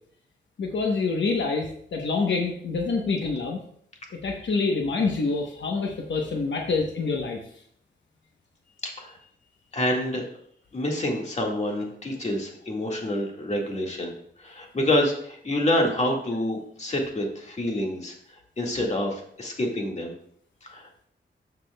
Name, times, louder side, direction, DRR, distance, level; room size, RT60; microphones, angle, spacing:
voice 1, 0.6-3.6 4.1-7.4, left 4 dB, 80° left, 1 dB, 1.0 m, -26 dB
voice 2, 8.8-9.2 9.7-10.2 10.7-14.1 14.4-20.1 20.6-20.9, left 1 dB, 40° left, 0 dB, 1.8 m, -27 dB
13.5 x 6.0 x 2.3 m, 0.64 s
wide cardioid pair, 115°, 19 cm